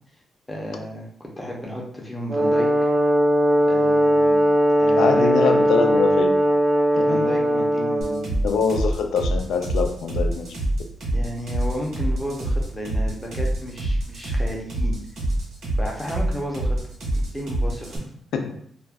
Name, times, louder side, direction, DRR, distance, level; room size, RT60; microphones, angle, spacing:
voice 1, 0.5-2.7 3.7-4.4 4.8-5.3 6.9-8.4 11.1-14.9 15.8-16.8 17.1-18.0, equal, 10° left, -1 dB, 0.6 m, -33 dB
Brass instrument, 2.3-8.3, equal, 40° right, 0.4 m, -19 dB
voice 2, 5.0-6.4 7.0-7.4 8.4-10.5 18.3-18.5, left 5 dB, 80° left, 5 dB, 0.4 m, -24 dB
sound 1, 8.0-18.0, right 1 dB, 70° right, 1.1 m, -25 dB
2.4 x 2.1 x 3.4 m, 0.64 s
cardioid pair, 140°, 0 cm